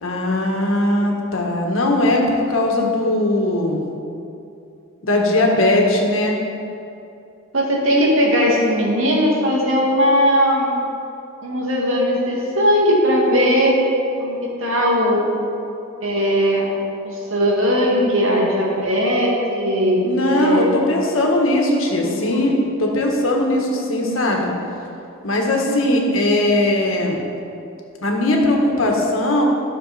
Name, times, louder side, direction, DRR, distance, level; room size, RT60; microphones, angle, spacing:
voice 1, 0.0-3.8 5.0-6.4 20.0-24.5 25.2-27.2 28.0-29.4, left 1 dB, 75° left, 0 dB, 1.6 m, -19 dB
voice 2, 7.5-10.8 11.4-13.8 14.2-15.3 16.0-16.7 17.0-20.8 22.0-22.4, equal, 75° right, -3 dB, 2.1 m, -18 dB
13.5 x 6.8 x 4.3 m, 2.7 s
head